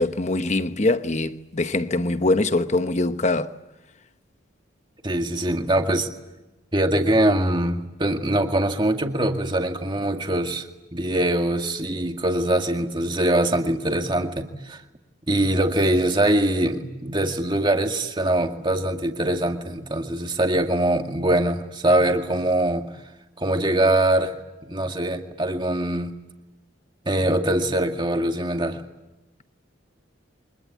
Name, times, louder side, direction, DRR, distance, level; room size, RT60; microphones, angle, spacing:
voice 1, 0.0-3.6, left 2 dB, 35° left, 1.0 m, -23 dB
voice 2, 5.0-6.1 6.7-10.7 10.9-14.8 15.3-22.9 23.4-24.4 24.6-26.1 27.1-28.8, right 1 dB, 25° right, 2.1 m, -23 dB
29.0 x 24.5 x 8.4 m
head